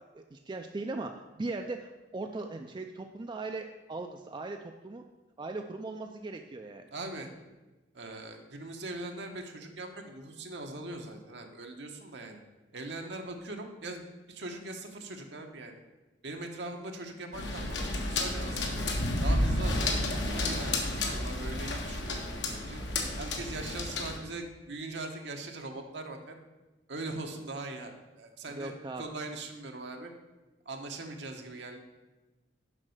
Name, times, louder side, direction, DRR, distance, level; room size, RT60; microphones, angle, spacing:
voice 1, 0.1-5.1 5.4-6.9 28.5-29.0, right 3 dB, 25° right, 4 dB, 0.4 m, -39 dB
voice 2, 6.9-7.3 7.9-12.4 12.7-14.0 14.3-15.8 16.2-18.8 19.2-22.8 23.2-26.3 26.9-30.1 30.6-31.8, right 2 dB, 65° right, 3 dB, 1.1 m, -41 dB
sound 1, 17.3-24.2, left 1 dB, 65° left, 1.4 m, -31 dB
7.5 x 5.3 x 6.4 m, 1.1 s
head